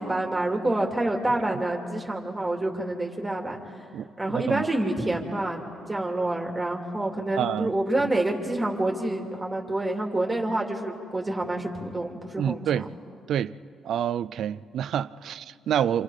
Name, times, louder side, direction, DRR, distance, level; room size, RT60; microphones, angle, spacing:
voice 1, 0.0-3.6 4.2-5.6 5.9-12.7, right 1 dB, 15° right, 2.8 m, -27 dB
voice 2, 3.9-4.7 7.4-7.7 12.4-12.9 13.3-13.6 13.8-16.0, right 9 dB, 70° right, 0.5 m, -28 dB
27.5 x 27.5 x 5.0 m
cardioid pair, 90°, 0 cm